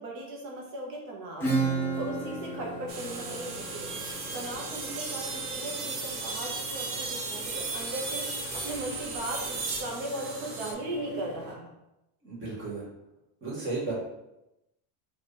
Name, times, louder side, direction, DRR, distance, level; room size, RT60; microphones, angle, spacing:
voice 1, 0.0-4.0 4.3-11.7, right 1 dB, 80° right, -1 dB, 1.4 m, -38 dB
sound 1, 1.4-11.6, left 3 dB, 25° left, 0.6 m, -45 dB
Acoustic guitar / Strum, 1.4-6.8, right 4 dB, 5° left, 1.1 m, -34 dB
sound 2, 2.9-10.7, right 4 dB, 60° right, 0.9 m, -36 dB
voice 2, 12.2-12.9 13.4-13.9, right 3 dB, 25° right, -6 dB, 1.4 m, -34 dB
4.3 x 3.0 x 3.2 m, 0.91 s
cardioid pair, 175°, 44 cm